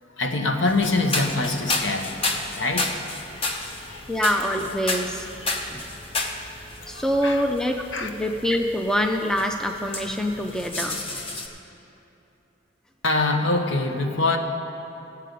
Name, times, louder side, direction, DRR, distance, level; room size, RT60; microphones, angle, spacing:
voice 1, 0.2-2.2 2.6-2.9 3.5-4.1 6.8-7.5 7.9-8.1 13.0-14.4, left 2 dB, 70° left, 4 dB, 1.0 m, -25 dB
sound 1, 0.7-11.5, left 2 dB, 25° left, 0.8 m, -32 dB
voice 2, 4.1-5.3 5.7-5.9 6.9-11.0, equal, 5° left, 3 dB, 0.4 m, -25 dB
16.5 x 7.5 x 5.3 m, 2.8 s
head